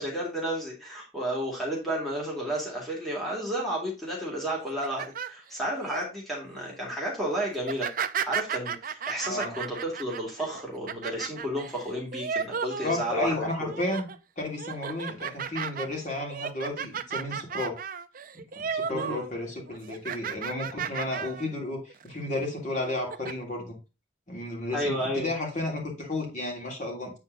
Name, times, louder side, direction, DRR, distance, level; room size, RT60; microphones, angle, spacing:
voice 1, 0.0-7.9 8.3-13.3 13.6-13.7 18.9-19.2 24.7-25.3, right 1 dB, ahead, -5 dB, 2.4 m, -32 dB
sound 1, 4.6-6.0 6.5-6.8 7.6-13.3 13.7-14.2 14.6-19.3 19.6-21.5 21.9-22.1 22.8-23.3, right 7 dB, 45° right, 0.5 m, -34 dB
voice 2, 9.2-9.6 12.8-14.1 14.4-17.8 18.5-23.8 24.3-27.1, left 2 dB, 40° left, -1 dB, 2.9 m, -32 dB
8.4 x 4.4 x 3.9 m, 0.28 s
head